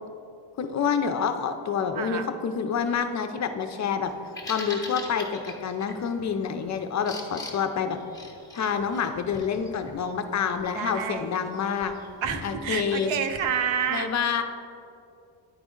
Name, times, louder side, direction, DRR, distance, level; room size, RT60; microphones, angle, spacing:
voice 1, 0.6-4.1 4.5-8.0 8.5-11.9 12.4-13.1 13.9-14.4, left 6 dB, 40° left, 7 dB, 0.4 m, -27 dB
voice 2, 2.0-2.3 10.7-11.5 12.2-14.1, right 7 dB, 80° right, 8 dB, 0.7 m, -29 dB
Bird vocalization bird call bird song, 4.0-13.5, left 2 dB, 10° left, 0.8 m, -43 dB
9.4 x 4.0 x 3.7 m, 2.5 s
cardioid pair, 120°, 44 cm